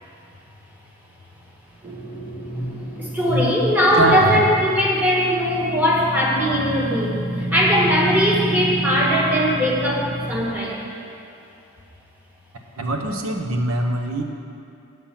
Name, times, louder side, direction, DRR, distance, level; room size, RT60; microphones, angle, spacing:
sound 1, 1.8-10.4, right 1 dB, 25° right, 1.0 m, -29 dB
voice 1, 2.4-10.9, equal, 10° right, -4 dB, 1.2 m, -20 dB
voice 2, 4.0-4.4 12.8-14.2, right 1 dB, 80° right, 3 dB, 0.9 m, -23 dB
7.8 x 5.7 x 7.3 m, 2.6 s
head